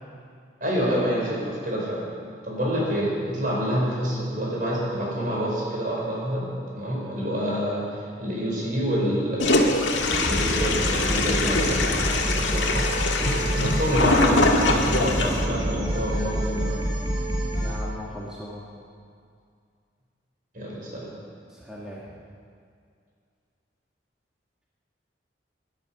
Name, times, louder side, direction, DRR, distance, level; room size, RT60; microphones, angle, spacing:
voice 1, 0.6-2.0 2.4-9.8 10.2-12.8 13.5-16.8 20.5-21.1, equal, 45° right, -3 dB, 5.0 m, -27 dB
Toilet flush, 9.4-15.4, left 2 dB, 85° left, 1.7 m, -23 dB
sound 1, 10.1-17.8, right 1 dB, 25° right, 2.5 m, -27 dB
voice 2, 13.2-13.5 17.5-18.6 20.8-20.9 21.5-22.1, left 1 dB, 5° right, -6 dB, 1.8 m, -39 dB
20.0 x 11.5 x 5.8 m, 2.3 s
head